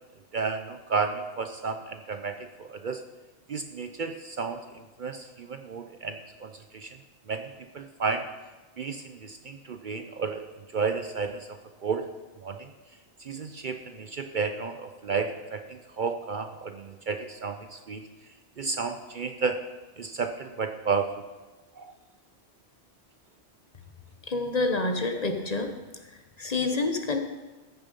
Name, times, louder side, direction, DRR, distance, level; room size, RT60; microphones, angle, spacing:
voice 1, 0.3-3.0 3.5-4.6 5.0-6.9 7.3-7.5 7.7-8.2 8.8-10.4 10.7-12.0 12.4-12.7 13.2-18.1 18.6-19.6 20.0-21.1 21.8-21.9, right 5 dB, 50° right, 7 dB, 0.7 m, -32 dB
voice 2, 24.3-25.7 26.4-27.2, left 3 dB, 40° left, 5 dB, 1.0 m, -27 dB
14.0 x 7.0 x 5.4 m, 1.2 s
omnidirectional pair, 1.2 m